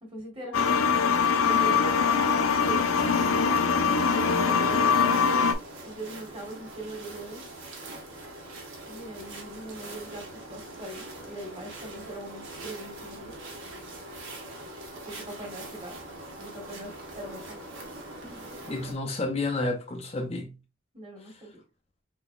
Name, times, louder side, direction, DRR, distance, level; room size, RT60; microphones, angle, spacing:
voice 1, 0.0-0.8 1.4-2.9 3.2-5.4 5.8-7.4 8.9-13.3 15.0-15.9 16.4-17.6 18.2-18.5 20.9-21.5, right 2 dB, 25° right, 1.5 m, -41 dB
sound 1, 0.5-5.5, left 6 dB, 85° left, 0.5 m, -23 dB
sound 2, 2.5-18.9, right 1 dB, 75° right, 1.4 m, -43 dB
voice 2, 18.7-20.5 21.2-21.4, left 2 dB, 30° left, 0.5 m, -31 dB
3.9 x 3.9 x 2.3 m
head